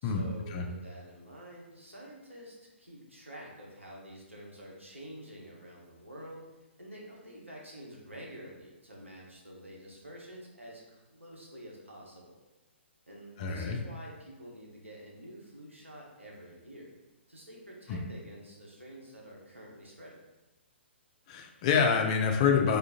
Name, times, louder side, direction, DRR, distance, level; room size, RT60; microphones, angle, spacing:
voice 1, 0.0-6.4 6.8-12.4 13.1-17.0 17.3-20.1, equal, 85° right, -3 dB, 0.9 m, -48 dB
voice 2, 13.4-13.8 17.9-18.0 21.3-22.8, left 6 dB, 30° left, 4 dB, 0.4 m, -26 dB
3.5 x 2.4 x 2.7 m, 1.1 s
figure-of-eight pair, 125°, 7 cm